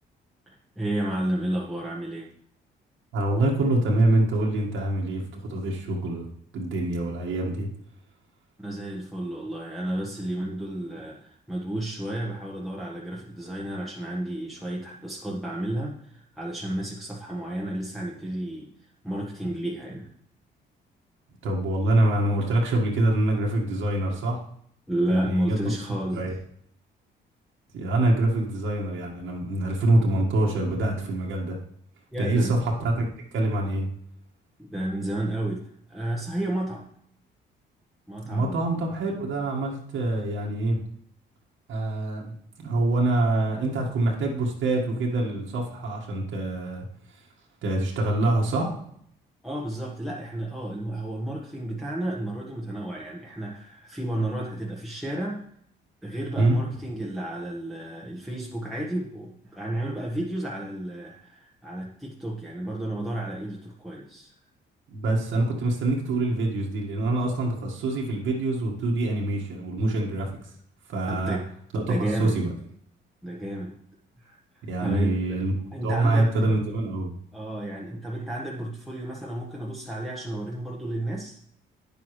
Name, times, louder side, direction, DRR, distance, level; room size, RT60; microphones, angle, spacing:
voice 1, 0.5-2.3 8.6-18.7 19.0-20.1 24.9-26.2 32.1-32.6 34.6-36.9 38.1-38.6 49.4-55.4 56.0-64.3 71.1-71.4 71.8-72.4 73.2-73.7 74.2-75.1 75.7-76.3 77.3-81.4, right 1 dB, ahead, -4 dB, 1.3 m, -32 dB
voice 2, 3.1-6.2 6.5-7.7 21.4-24.4 25.1-25.6 26.1-26.3 27.7-31.6 32.2-33.0 33.3-33.9 38.2-40.8 41.7-42.4 42.6-47.3 47.6-48.8 56.4-56.6 64.9-70.5 70.9-71.4 71.7-72.5 74.7-75.5 75.8-77.1, right 1 dB, 80° right, -2 dB, 1.7 m, -25 dB
9.2 x 7.0 x 3.2 m, 0.67 s
cardioid pair, 90°, 20 cm